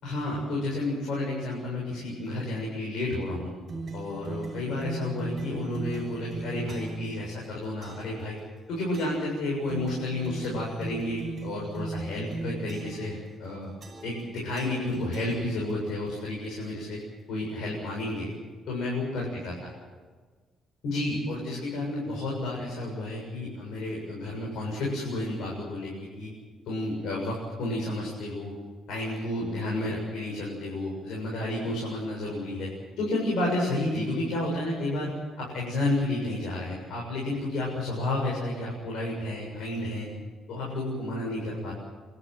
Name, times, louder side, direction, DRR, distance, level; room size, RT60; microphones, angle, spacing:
voice 1, 0.0-3.5 3.9-8.4 8.7-13.7 14.0-17.0 17.3-18.3 18.7-19.7 20.8-26.3 26.7-28.6 28.9-32.7 33.0-35.1 35.4-40.1 40.5-41.7, left 1 dB, 75° left, -2 dB, 7.4 m, -31 dB
sound 1, 3.7-7.1 7.8-8.2 8.9-9.3 9.7-13.1 13.8-14.3 14.6-15.9, right 2 dB, 30° right, 5.8 m, -38 dB
29.0 x 13.5 x 9.1 m, 1.4 s
cardioid pair, 160°, 0 cm